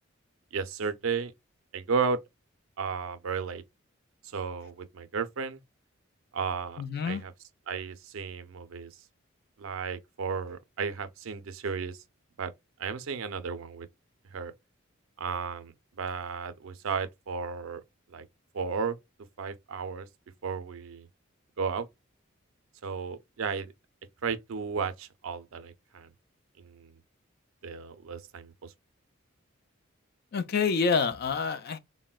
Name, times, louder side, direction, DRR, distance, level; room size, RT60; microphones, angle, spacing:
voice 1, 0.5-1.3 1.7-2.2 2.8-3.6 4.3-5.6 6.3-7.3 7.7-8.9 9.6-12.0 12.4-12.5 12.8-13.9 14.3-14.5 15.2-17.8 18.1-18.3 18.5-19.0 19.4-20.1 20.4-21.1 21.6-21.9 22.8-23.7 24.2-26.1 26.6-26.9 27.6-28.7, right 5 dB, 75° right, 0.4 m, -34 dB
voice 2, 6.8-7.2 30.3-31.8, left 5 dB, 50° left, 0.3 m, -27 dB
3.7 x 2.0 x 2.2 m
head